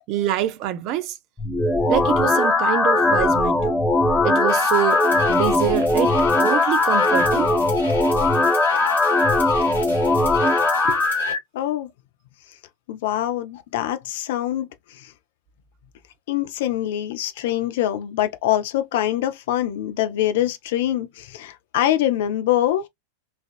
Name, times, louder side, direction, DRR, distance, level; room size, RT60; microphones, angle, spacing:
voice 1, 0.1-1.1 1.9-3.7 4.2-5.0 5.3-7.5 10.8-11.0, right 12 dB, 40° right, 0.4 m, -25 dB
sound 1, 1.4-11.4, left 2 dB, 10° left, 0.8 m, -19 dB
sound 2, 4.5-11.3, left 4 dB, 75° left, 1.3 m, -36 dB
voice 2, 11.5-11.9 12.9-15.1 16.3-22.9, left 12 dB, 55° left, 0.4 m, -24 dB
3.3 x 2.3 x 2.3 m
figure-of-eight pair, 90°, 0 cm